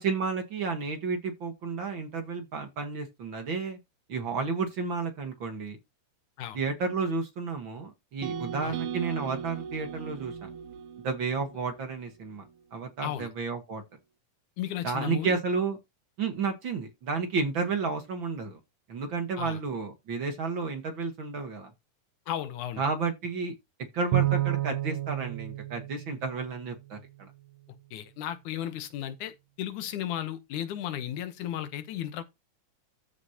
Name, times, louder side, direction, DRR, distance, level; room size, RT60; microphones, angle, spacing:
voice 1, 0.0-3.8 4.1-5.8 6.5-10.5 11.0-13.8 14.8-15.8 16.2-18.6 18.9-21.7 22.8-23.5 23.9-27.3, right 4 dB, 50° right, 1.8 m, -32 dB
sound 1, 8.2-12.4, right 8 dB, 85° right, 2.3 m, -38 dB
voice 2, 14.6-15.4 19.4-19.6 22.3-22.8 27.9-32.2, left 11 dB, 85° left, 2.5 m, -34 dB
Bowed string instrument, 24.1-26.7, right 16 dB, 70° right, 1.6 m, -30 dB
14.0 x 5.1 x 2.9 m
omnidirectional pair, 3.4 m